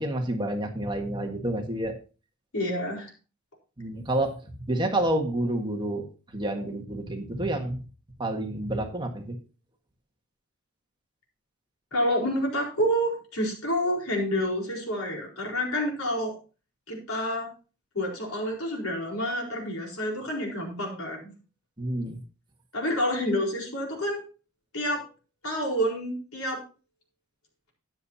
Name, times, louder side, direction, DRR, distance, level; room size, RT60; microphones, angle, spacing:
voice 1, 0.0-1.9 3.8-6.1 6.3-7.8 8.2-9.4 21.8-22.2, right 1 dB, 20° right, 3 dB, 1.6 m, -29 dB
voice 2, 2.5-3.1 11.9-16.3 16.9-17.5 17.9-21.3 22.7-24.2 24.7-25.1 25.4-26.6, equal, 85° left, 0 dB, 4.4 m, -28 dB
13.0 x 9.9 x 2.8 m, 0.34 s
head